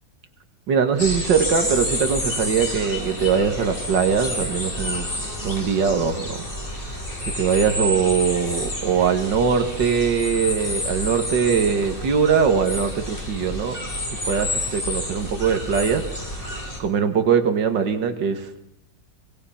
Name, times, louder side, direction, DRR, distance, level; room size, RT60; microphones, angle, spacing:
voice 1, 0.7-5.1 5.4-6.4 6.7-6.8 7.3-13.8 14.3-18.5, right 6 dB, 85° right, 7 dB, 2.3 m, -22 dB
sound 1, 1.0-16.8, left 1 dB, 30° left, 4.4 m, -29 dB
25.0 x 18.5 x 5.8 m, 0.75 s
omnidirectional pair, 1.9 m